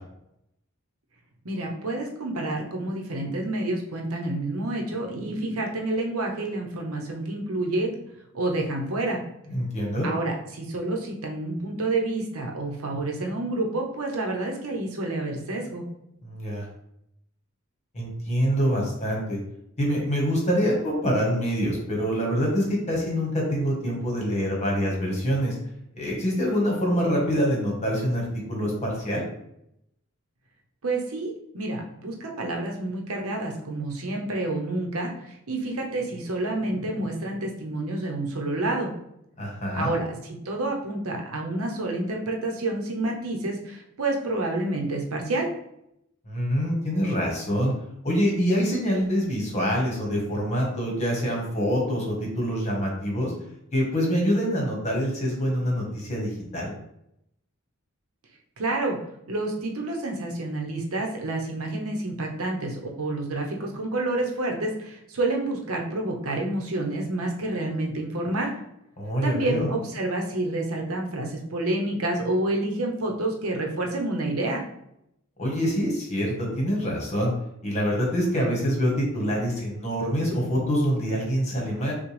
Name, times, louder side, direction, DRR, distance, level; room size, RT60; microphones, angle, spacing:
voice 1, 1.4-7.9 8.3-9.2 10.0-15.9 30.8-38.9 39.7-45.5 58.6-59.0 59.3-68.5 69.2-74.6, right 2 dB, 85° right, 1 dB, 0.8 m, -29 dB
voice 2, 9.5-10.1 16.2-16.6 17.9-19.4 19.8-25.6 26.0-29.2 39.4-40.0 46.3-47.7 48.0-53.3 53.7-56.7 69.0-69.7 75.4-77.3 77.6-81.9, equal, 35° left, -1 dB, 1.2 m, -25 dB
6.0 x 2.3 x 3.2 m, 0.79 s
head